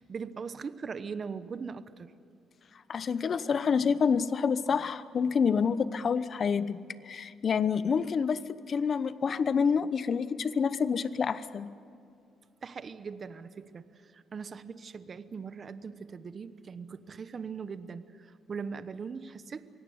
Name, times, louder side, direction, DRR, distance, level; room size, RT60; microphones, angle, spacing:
voice 1, 0.0-2.1 12.6-19.7, right 5 dB, 45° right, 13 dB, 1.0 m, -40 dB
voice 2, 2.9-11.7, left 6 dB, 50° left, 15 dB, 0.9 m, -28 dB
24.0 x 17.5 x 9.5 m, 2.5 s
cardioid pair, 90°, 0 cm